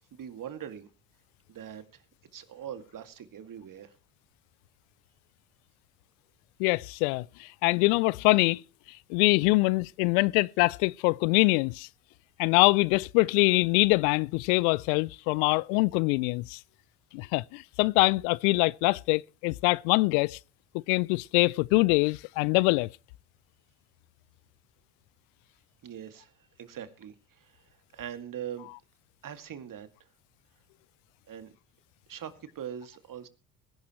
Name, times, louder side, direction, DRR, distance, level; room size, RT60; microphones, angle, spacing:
voice 1, 0.1-0.9 1.5-2.0 2.3-3.9 25.8-26.3 26.6-27.5 27.9-28.7 29.2-29.9 31.3-31.5 32.1-33.3, right 9 dB, 45° right, 2.3 m, -41 dB
voice 2, 6.6-8.6 9.1-11.9 12.4-16.6 17.1-20.4 20.9-22.9, left 25 dB, 70° left, 0.5 m, -24 dB
21.5 x 11.0 x 3.1 m
hypercardioid pair, 65°, 45 cm